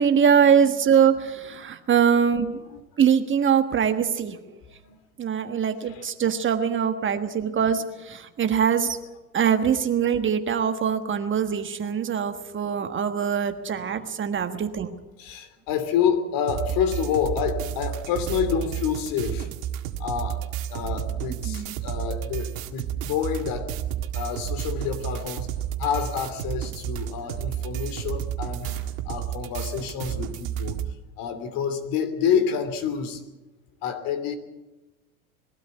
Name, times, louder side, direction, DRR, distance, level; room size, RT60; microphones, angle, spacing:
voice 1, 0.0-2.6 3.0-4.4 5.2-9.0 9.3-14.9 21.4-21.7, right 7 dB, 25° right, 8 dB, 1.4 m, -23 dB
voice 2, 15.2-19.5 20.0-23.8 24.1-25.5 25.8-30.8 31.2-33.2 33.8-34.4, left 8 dB, 50° left, 11 dB, 2.9 m, -28 dB
sound 1, 16.5-30.9, right 10 dB, 65° right, 2.0 m, -31 dB
21.5 x 13.0 x 9.5 m, 1.1 s
hypercardioid pair, 90°, 43 cm